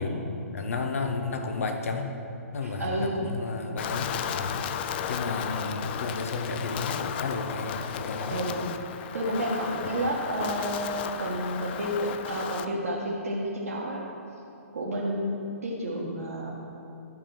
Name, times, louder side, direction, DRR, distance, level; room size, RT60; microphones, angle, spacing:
voice 1, 0.0-2.1 2.5-8.4, left 3 dB, 65° left, 5 dB, 1.1 m, -32 dB
voice 2, 2.6-3.2 8.3-8.7 9.1-14.0 14.7-16.5, right 1 dB, 70° right, -5 dB, 1.4 m, -30 dB
Wind, 3.8-12.7, left 8 dB, 40° left, 0.4 m, -34 dB
11.0 x 4.9 x 6.0 m, 2.7 s
figure-of-eight pair, 125°, 8 cm